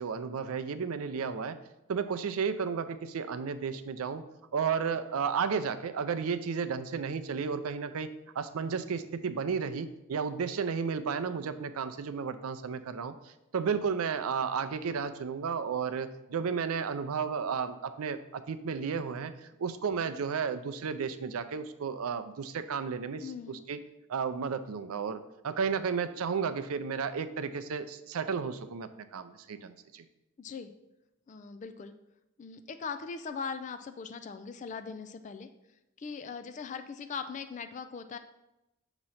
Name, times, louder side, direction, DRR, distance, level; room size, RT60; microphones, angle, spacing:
voice 1, 0.0-1.6 1.9-4.2 4.5-23.8 24.1-30.0, right 6 dB, 85° right, 10 dB, 0.4 m, -33 dB
voice 2, 23.2-23.6 30.4-30.7 31.3-31.9 32.4-35.5 36.0-38.2, left 5 dB, 35° left, 9 dB, 0.3 m, -40 dB
6.3 x 3.0 x 5.5 m, 0.91 s
head